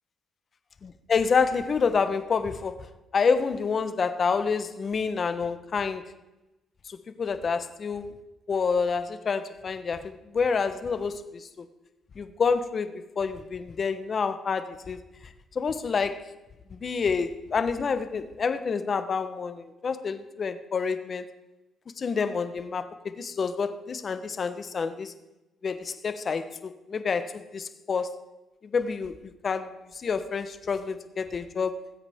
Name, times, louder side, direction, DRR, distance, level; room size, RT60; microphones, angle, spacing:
voice 1, 0.8-2.8 3.1-6.0 6.9-8.1 8.5-11.6 12.2-15.0 15.5-16.3 16.7-21.3 22.0-25.1 25.6-28.2 28.7-29.2 29.4-29.7 29.9-31.8, left 5 dB, 45° left, 11 dB, 1.0 m, -28 dB
19.5 x 8.2 x 3.6 m, 1.0 s
cardioid pair, 90°, 0 cm